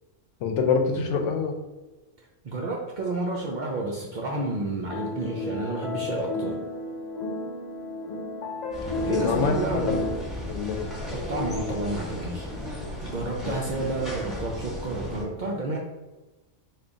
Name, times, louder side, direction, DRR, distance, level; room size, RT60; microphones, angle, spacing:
voice 1, 0.4-1.5 9.0-10.0 10.5-10.9 13.4-13.6, left 5 dB, 85° left, 5 dB, 0.9 m, -26 dB
voice 2, 2.2-6.6 9.0-10.0 11.1-12.5 13.0-15.8, right 2 dB, 60° right, -1 dB, 0.5 m, -30 dB
sound 1, 4.9-10.2, left 2 dB, 55° left, 0.4 m, -32 dB
sound 2, 8.7-15.2, left 1 dB, ahead, 0.6 m, -35 dB
3.5 x 2.3 x 3.8 m, 1.2 s
omnidirectional pair, 1.2 m